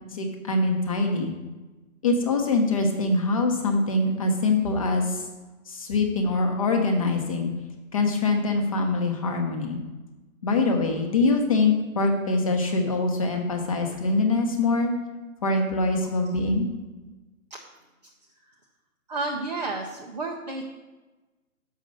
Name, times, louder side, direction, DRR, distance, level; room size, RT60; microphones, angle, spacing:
voice 1, 0.1-1.3 2.0-5.2 5.7-7.5 7.9-9.8 10.4-14.9 15.4-16.6, left 3 dB, 25° left, 3 dB, 0.8 m, -24 dB
voice 2, 19.1-20.6, right 3 dB, 30° right, 0 dB, 0.5 m, -31 dB
6.5 x 5.4 x 6.3 m, 1.2 s
hypercardioid pair, 160°, 42 cm